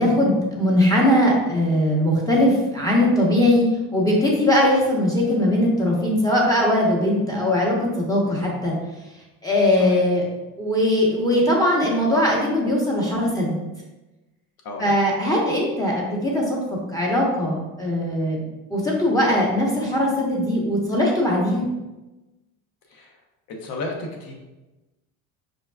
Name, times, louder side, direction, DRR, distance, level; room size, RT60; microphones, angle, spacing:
voice 1, 0.0-8.7 9.4-10.3 10.6-13.6 14.8-16.6 16.9-18.4 18.7-21.7, left 1 dB, 10° left, -3 dB, 1.0 m, -20 dB
voice 2, 14.6-14.9 22.9-23.1 23.6-24.3, left 2 dB, 55° left, 1 dB, 0.9 m, -33 dB
5.2 x 2.2 x 2.3 m, 1.1 s
supercardioid pair, 90°, 42 cm